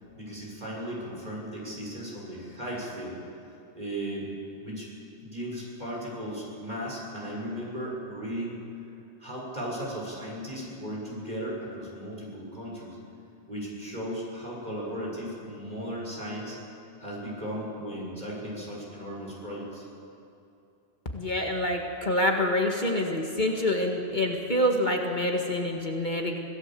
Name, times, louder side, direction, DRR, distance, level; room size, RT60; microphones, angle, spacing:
voice 1, 0.2-3.1 3.7-4.3 4.6-4.9 5.2-8.6 9.2-13.0 13.5-16.6 17.0-19.8, equal, 40° right, -4 dB, 6.8 m, -36 dB
voice 2, 21.1-26.4, left 1 dB, 45° left, 1 dB, 2.0 m, -26 dB
25.0 x 17.0 x 7.7 m, 2.7 s
omnidirectional pair, 1.1 m